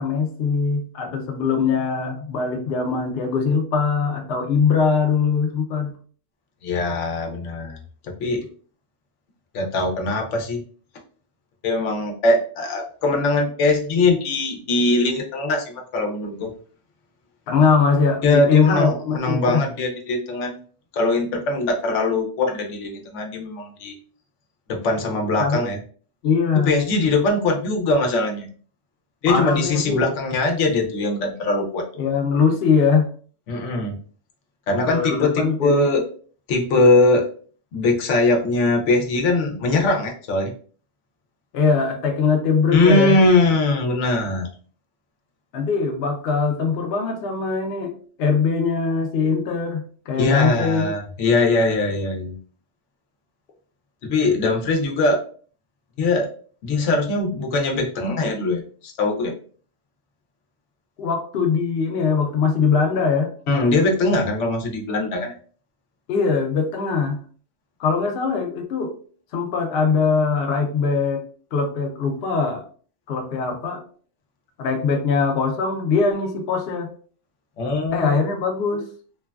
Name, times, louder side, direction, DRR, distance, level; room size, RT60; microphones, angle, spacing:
voice 1, 0.0-5.9 17.5-19.6 25.4-25.7 26.2-26.7 29.3-30.1 32.0-33.1 34.8-35.9 41.5-43.2 45.5-47.9 48.2-50.9 61.0-63.3 66.1-67.2 67.8-68.9 69.3-71.2 71.5-72.7 73.1-73.8 74.6-76.9 77.9-78.9, left 5 dB, 65° left, 2 dB, 0.8 m, -21 dB
voice 2, 6.6-7.8 8.2-8.5 9.5-10.6 11.6-16.5 18.2-20.5 20.9-23.9 24.7-25.8 26.6-28.5 29.2-31.8 33.5-34.0 34.7-36.0 36.5-37.2 37.7-40.5 42.7-44.5 50.2-52.4 54.0-55.2 56.0-56.3 56.6-59.3 63.5-65.3 77.6-78.1, left 2 dB, 90° left, 1 dB, 1.0 m, -21 dB
3.1 x 2.2 x 2.3 m, 0.43 s
omnidirectional pair, 1.2 m